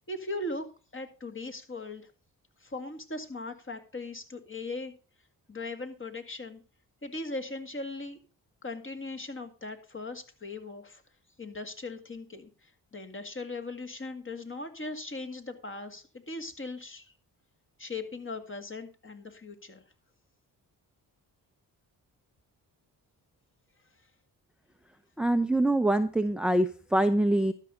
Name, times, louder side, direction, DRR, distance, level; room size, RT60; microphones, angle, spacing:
voice 1, 0.1-0.6 0.9-2.1 2.6-4.9 5.5-6.6 7.0-8.2 8.6-11.0 11.4-17.2 17.8-19.8, left 2 dB, 30° left, 7 dB, 2.0 m, -39 dB
voice 2, 25.2-27.5, right 1 dB, ahead, 9 dB, 0.6 m, -24 dB
12.5 x 5.6 x 5.0 m, 0.36 s
supercardioid pair, 55°, 42 cm